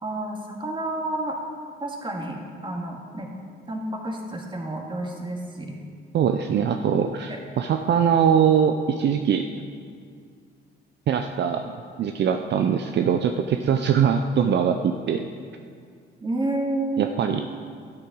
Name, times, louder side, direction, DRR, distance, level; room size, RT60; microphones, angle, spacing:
voice 1, 0.0-1.4 1.8-3.3 3.7-5.8 7.3-7.4 16.2-17.1, right 2 dB, 25° right, 0 dB, 2.1 m, -30 dB
voice 2, 6.1-9.5 11.1-11.7 12.0-15.2 17.0-17.4, right 7 dB, 60° right, 6 dB, 0.6 m, -22 dB
11.5 x 8.7 x 6.1 m, 2.1 s
cardioid pair, 90°, 20 cm